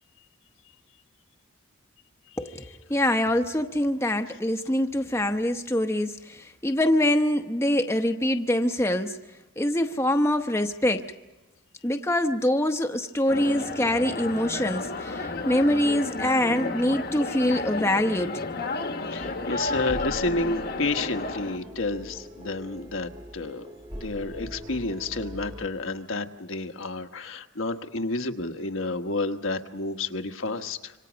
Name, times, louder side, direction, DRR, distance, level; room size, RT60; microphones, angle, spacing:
voice 1, 2.4-9.2 9.6-11.1 11.8-18.4, left 1 dB, 10° left, 0.9 m, -24 dB
sound 1, 13.3-21.6, left 3 dB, 45° left, 1.2 m, -32 dB
voice 2, 19.1-23.7 23.9-30.9, left 2 dB, 70° left, 1.4 m, -30 dB
sound 2, 19.2-25.7, equal, 20° right, 1.3 m, -42 dB
27.0 x 26.0 x 5.2 m
head